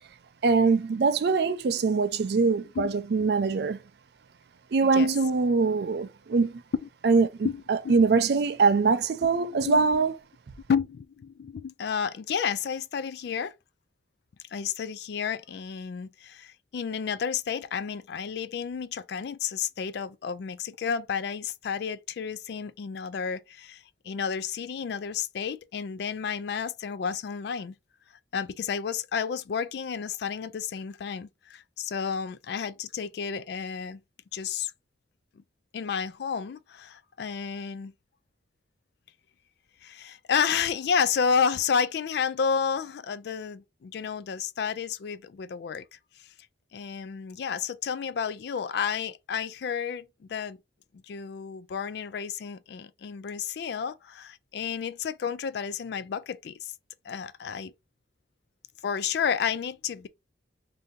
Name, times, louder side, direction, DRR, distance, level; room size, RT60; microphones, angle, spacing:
voice 1, 0.4-3.8 4.7-6.5 7.0-7.3 7.7-10.2, right 4 dB, 55° right, 0.4 m, -23 dB
voice 2, 2.7-3.3 4.9-5.1 6.8-6.9 7.4-8.0 9.5-10.0 10.7-13.5 14.5-27.7 28.3-34.0 34.3-34.7 35.7-37.9 39.8-45.8 46.7-50.6 51.1-56.7 57.0-57.7 58.8-60.1, left 6 dB, 60° left, 0.3 m, -31 dB
2.7 x 2.7 x 3.5 m
head